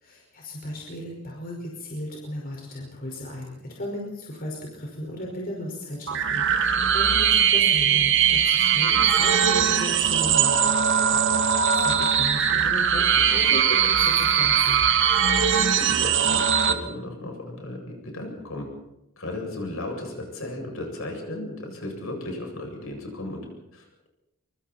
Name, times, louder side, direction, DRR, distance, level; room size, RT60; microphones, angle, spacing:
voice 1, 0.0-10.6 11.7-14.8, left 1 dB, 40° left, -1 dB, 5.4 m, -35 dB
sound 1, 6.1-16.7, right 8 dB, 60° right, 1.9 m, -20 dB
voice 2, 6.5-6.9 10.8-11.4 15.1-18.7 19.2-23.5 23.7-24.1, left 2 dB, 65° left, 1 dB, 7.8 m, -36 dB
26.5 x 25.0 x 4.4 m, 0.90 s
head